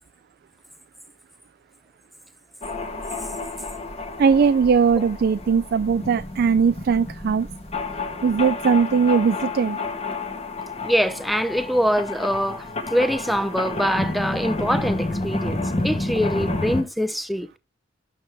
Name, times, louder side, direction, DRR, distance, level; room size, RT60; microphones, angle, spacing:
sound 1, 2.6-16.8, left 2 dB, 35° left, 1.5 m, -30 dB
voice 1, 4.2-7.5 8.2-9.8, right 6 dB, 55° right, 0.4 m, -19 dB
voice 2, 10.8-17.6, equal, ahead, 0.6 m, -24 dB
8.8 x 6.1 x 3.4 m
head